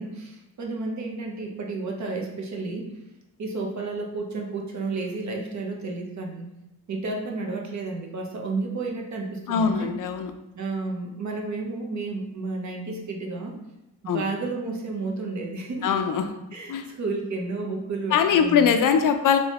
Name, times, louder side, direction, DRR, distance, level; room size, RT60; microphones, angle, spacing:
voice 1, 0.0-2.9 3.4-6.5 6.9-9.9 10.5-13.6 14.0-16.0 16.5-18.7, right 3 dB, 50° right, 1 dB, 0.8 m, -31 dB
voice 2, 9.5-10.3 14.1-14.2 15.8-16.3 16.7-16.9 18.1-19.4, left 7 dB, 60° left, 7 dB, 0.5 m, -22 dB
3.1 x 3.1 x 2.9 m, 0.92 s
cardioid pair, 85°, 37 cm